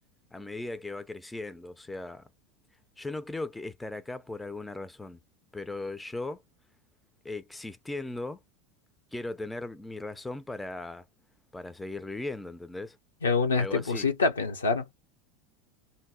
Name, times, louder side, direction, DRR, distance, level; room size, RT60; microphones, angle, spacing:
voice 1, 0.3-2.3 3.0-5.2 5.5-6.4 7.2-8.4 9.1-11.0 11.5-13.0 13.6-14.1, left 2 dB, 10° left, 0.4 m, -38 dB
voice 2, 13.2-14.9, left 4 dB, 75° left, 0.7 m, -26 dB
2.7 x 2.1 x 3.5 m
figure-of-eight pair, 75°, 0 cm